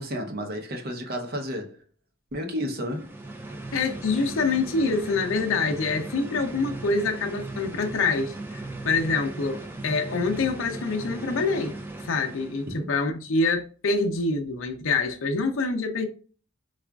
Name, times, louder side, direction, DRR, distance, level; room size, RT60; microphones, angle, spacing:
voice 1, 0.0-1.8 2.3-3.1 12.7-12.9, equal, 50° right, 0.7 m, -32 dB
sound 1, 2.8-12.8, right 2 dB, 10° right, 0.4 m, -38 dB
voice 2, 3.7-11.8 12.0-16.1, left 3 dB, 70° left, 0.6 m, -26 dB
4.7 x 2.4 x 2.3 m
head